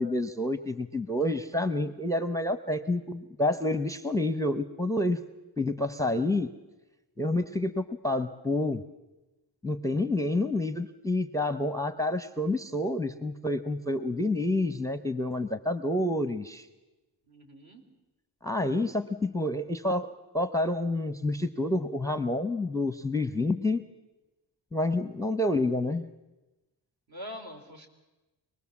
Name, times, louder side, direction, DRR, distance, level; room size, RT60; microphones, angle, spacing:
voice 1, 0.0-5.2 5.6-6.5 7.2-8.8 9.6-16.7 18.4-20.1 20.3-23.8 24.7-26.0, left 2 dB, 5° left, 10 dB, 0.7 m, -28 dB
voice 2, 17.3-17.8 27.1-27.9, left 1 dB, 55° right, 3 dB, 3.9 m, -43 dB
25.0 x 19.5 x 7.2 m, 1.1 s
wide cardioid pair, 100°, 44 cm